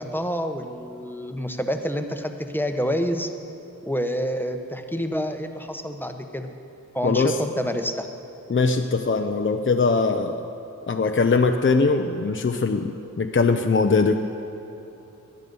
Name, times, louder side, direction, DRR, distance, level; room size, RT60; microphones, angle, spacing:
voice 1, 0.0-3.3 3.8-6.5 6.9-8.1, equal, 5° left, 5 dB, 1.1 m, -28 dB
voice 2, 7.0-7.4 8.5-10.5 10.9-14.2, left 4 dB, 40° left, 5 dB, 0.7 m, -21 dB
20.0 x 12.0 x 5.5 m, 2.9 s
wide cardioid pair, 85°, 31 cm